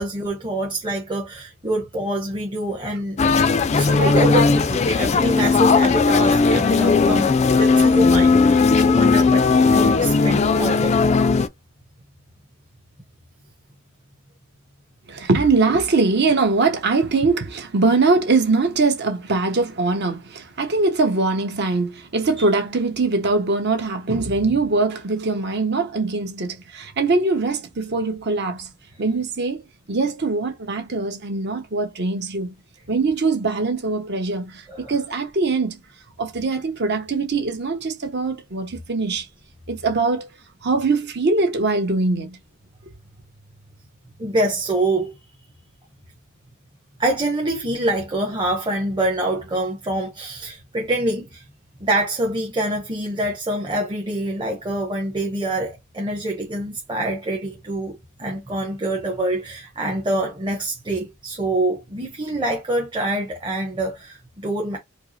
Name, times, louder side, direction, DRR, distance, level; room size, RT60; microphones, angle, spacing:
voice 1, 0.0-3.2 3.7-11.0 34.7-34.9 44.2-45.1 47.0-51.4 51.8-64.8, right 1 dB, 20° right, 0.9 m, -25 dB
sound 1, 3.2-11.5, left 4 dB, 30° left, 0.3 m, -17 dB
voice 2, 15.1-28.7 29.0-29.6 29.9-32.5 32.9-35.8 36.2-39.3 39.7-40.3 40.6-42.4 42.8-42.9, right 3 dB, 50° right, 1.0 m, -22 dB
4.5 x 2.0 x 2.9 m
head